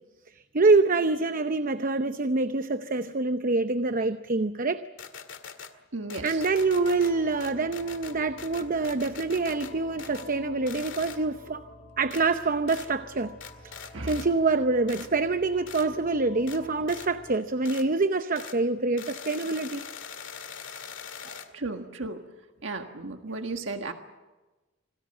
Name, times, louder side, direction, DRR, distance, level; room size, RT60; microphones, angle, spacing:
voice 1, 0.5-4.8 6.2-11.6 12.0-13.3 13.6-19.8 21.2-21.4, right 3 dB, 45° right, 10 dB, 0.8 m, -26 dB
sound 1, 5.0-5.7 6.1-7.1 7.4-9.7 10.0-10.3 10.7-11.2 12.1-12.2 12.7-12.9 13.4-14.3 14.9-15.1 15.7-15.9 16.5-16.6 16.9-17.1 17.6-17.9 18.3-18.6 19.0-21.5, left 7 dB, 85° left, 1.9 m, -42 dB
voice 2, 5.9-6.4 13.9-14.3 21.5-22.2 22.6-23.9, right 3 dB, 80° right, 5 dB, 1.6 m, -34 dB
sound 2, 6.4-17.4, left 1 dB, 35° left, 5.1 m, -50 dB
27.5 x 19.5 x 7.8 m, 1.2 s
head